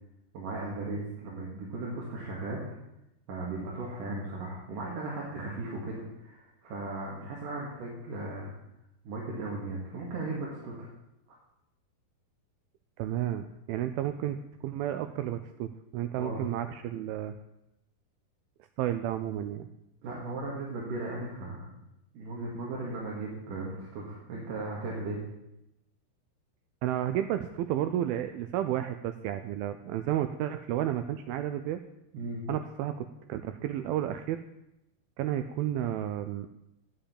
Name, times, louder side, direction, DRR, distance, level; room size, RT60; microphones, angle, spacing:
voice 1, 0.3-2.6 3.3-8.5 9.0-10.9 16.1-16.4 20.0-21.7 22.1-25.2 32.1-32.4, right 2 dB, 55° right, -4 dB, 3.3 m, -37 dB
voice 2, 13.0-17.4 18.8-19.7 26.8-31.8 32.5-34.4 35.2-36.5, right 11 dB, 85° right, 9 dB, 2.1 m, -32 dB
9.1 x 7.6 x 8.6 m, 0.86 s
omnidirectional pair, 4.9 m